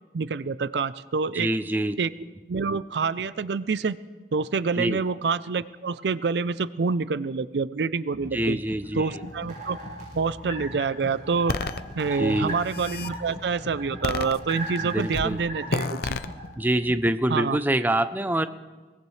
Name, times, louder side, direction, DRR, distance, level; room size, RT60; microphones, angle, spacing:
voice 1, 0.1-1.5 2.0-2.1 2.5-4.0 4.3-8.6 9.0-9.8 10.1-11.6 12.0-16.2 17.3-17.6, right 5 dB, 70° right, 16 dB, 0.5 m, -27 dB
voice 2, 1.3-2.0 4.8-5.0 8.3-9.1 12.1-12.6 14.8-15.4 16.6-18.5, right 1 dB, 10° right, 11 dB, 0.6 m, -25 dB
sound 1, 8.1-17.1, left 1 dB, 40° left, 1.3 m, -43 dB
sound 2, 8.8-16.4, right 1 dB, 45° right, 7.5 m, -38 dB
sound 3, 11.5-11.8 12.5-13.1 14.0-14.8 15.1-15.3 15.7-16.3, left 3 dB, 60° left, 0.6 m, -29 dB
22.5 x 20.0 x 3.2 m, 1.3 s
head